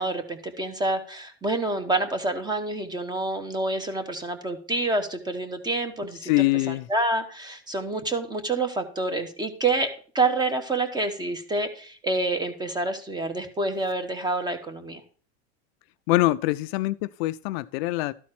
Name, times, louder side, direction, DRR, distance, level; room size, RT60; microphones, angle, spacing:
voice 1, 0.0-9.9 10.1-15.0, right 2 dB, 10° right, 1.2 m, -28 dB
voice 2, 6.2-6.9 16.1-18.1, left 19 dB, 65° left, 0.5 m, -24 dB
12.5 x 4.2 x 5.9 m
supercardioid pair, 125°, 33 cm